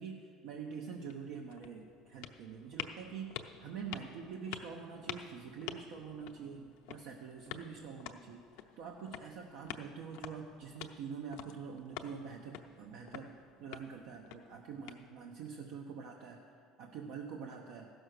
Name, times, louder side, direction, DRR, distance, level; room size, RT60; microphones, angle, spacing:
voice 1, 0.0-8.4 8.8-17.9, right 6 dB, 75° right, 1 dB, 0.9 m, -45 dB
sound 1, 1.1-15.5, left 10 dB, 80° left, 0.7 m, -49 dB
15.0 x 6.3 x 6.5 m, 2.3 s
supercardioid pair, 115°, 0 cm